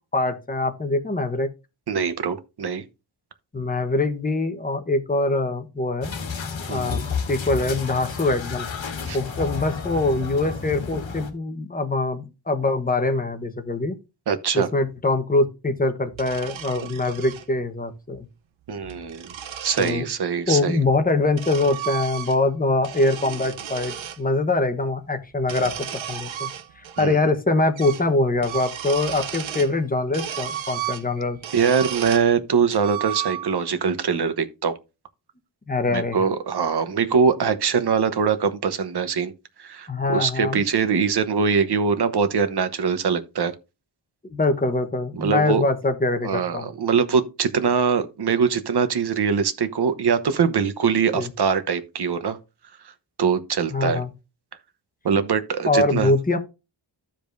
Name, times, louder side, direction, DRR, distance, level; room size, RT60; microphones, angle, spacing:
voice 1, 0.1-1.5 3.5-6.1 6.7-8.7 9.1-14.0 14.5-18.3 19.8-20.0 20.5-26.5 26.8-31.4 35.7-36.2 39.9-40.6 44.3-46.7 51.1-51.3 53.7-54.1 55.7-56.4, left 2 dB, 20° left, 1.0 m, -23 dB
voice 2, 1.9-2.8 6.7-7.0 9.1-9.2 14.3-14.7 18.7-19.3 19.6-20.8 27.0-27.2 31.5-34.7 35.9-39.3 39.6-43.5 45.2-45.6 46.2-52.4 53.2-54.0 55.0-56.1, right 6 dB, 60° right, 1.0 m, -22 dB
sound 1, 6.0-11.3, left 5 dB, 85° left, 1.4 m, -31 dB
sound 2, 16.1-17.4 18.7-20.0 20.9-22.5 22.8-24.2 25.4-27.0 27.3-27.4 27.8-28.1 28.4-29.8 30.1-32.3 32.7-33.7, right 10 dB, 90° right, 0.8 m, -34 dB
14.5 x 5.1 x 2.6 m
wide cardioid pair, 145°, 45 cm